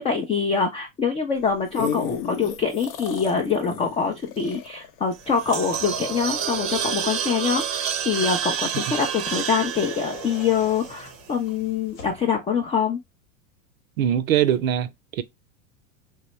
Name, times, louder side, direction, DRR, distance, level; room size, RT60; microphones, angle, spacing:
voice 1, 0.0-13.0, left 6 dB, 15° left, 0.3 m, -25 dB
sound 1, 1.4-6.0 6.6-6.7, left 8 dB, 60° left, 0.6 m, -33 dB
sound 2, 5.1-11.4, right 8 dB, 35° right, 0.6 m, -29 dB
sound 3, 5.6-7.4 9.6-12.3, left 6 dB, 75° left, 1.1 m, -41 dB
voice 2, 14.0-15.2, right 10 dB, 80° right, 0.6 m, -22 dB
3.3 x 2.0 x 3.0 m
hypercardioid pair, 95°, 40 cm